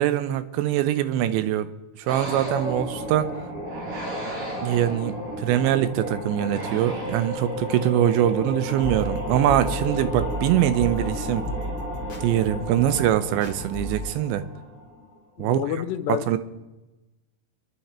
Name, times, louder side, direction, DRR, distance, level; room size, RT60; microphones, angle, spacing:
voice 1, 0.0-1.7 2.1-3.3 4.6-11.4 12.2-14.4 15.4-15.6 16.3-16.4, right 12 dB, 85° right, 12 dB, 3.1 m, -23 dB
sound 1, 2.1-15.0, equal, 70° right, 7.9 m, -33 dB
sound 2, 8.8-14.1, equal, 35° left, 1.7 m, -33 dB
voice 2, 15.4-16.4, left 10 dB, 80° left, 7 dB, 3.0 m, -29 dB
25.5 x 11.0 x 4.4 m, 1.1 s
omnidirectional pair, 5.0 m